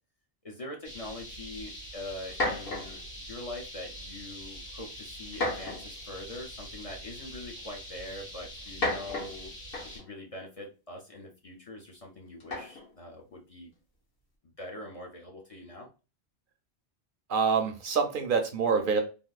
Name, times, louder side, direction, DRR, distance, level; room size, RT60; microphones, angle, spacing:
voice 1, 0.4-9.5 9.9-13.7 14.4-15.9, left 1 dB, 40° left, 0 dB, 0.6 m, -43 dB
sound 1, 0.8-10.0, equal, 90° left, 2.2 m, -44 dB
sound 2, 1.7-1.8 2.2-3.1 3.9-4.3 5.3-6.0 7.1-7.2 8.6-10.1 12.4-12.9, left 2 dB, 65° left, 1.3 m, -33 dB
voice 2, 17.3-19.0, right 5 dB, 60° right, 6 dB, 0.7 m, -26 dB
3.6 x 2.6 x 2.3 m, 0.32 s
omnidirectional pair, 1.1 m